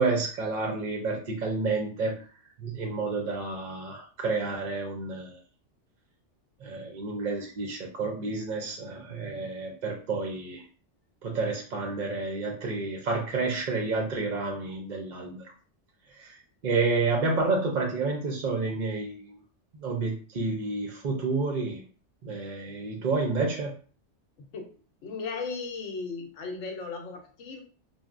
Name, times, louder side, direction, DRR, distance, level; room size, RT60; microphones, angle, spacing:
voice 1, 0.0-2.2 2.6-5.4 6.6-10.6 11.2-15.5 16.2-16.3 16.6-19.3 19.7-21.8 22.2-23.7, right 3 dB, 55° right, 1 dB, 0.5 m, -30 dB
voice 2, 25.0-27.6, left 4 dB, 85° left, 3 dB, 0.9 m, -36 dB
3.1 x 2.1 x 2.4 m, 0.41 s
omnidirectional pair, 1.2 m